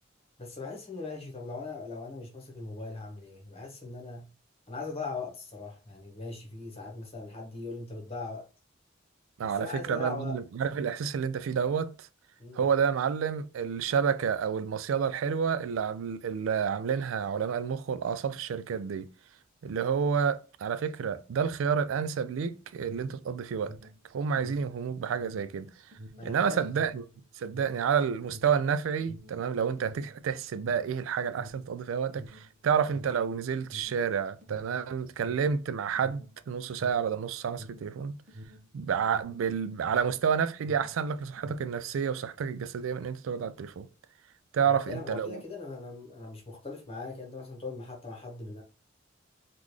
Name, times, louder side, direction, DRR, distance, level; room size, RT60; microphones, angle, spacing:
voice 1, 0.4-4.3 4.7-8.5 9.4-10.4 12.4-12.6 26.2-26.7 44.6-48.6, left 3 dB, 30° left, 1.1 m, -40 dB
voice 2, 9.4-12.1 12.5-19.1 19.6-23.8 24.1-25.7 26.2-27.0 27.4-38.1 38.7-43.9 44.5-45.4, right 7 dB, 90° right, 0.3 m, -29 dB
Alarm, 22.6-40.3 40.5-41.8, equal, 45° right, 0.8 m, -49 dB
3.7 x 2.5 x 3.1 m
head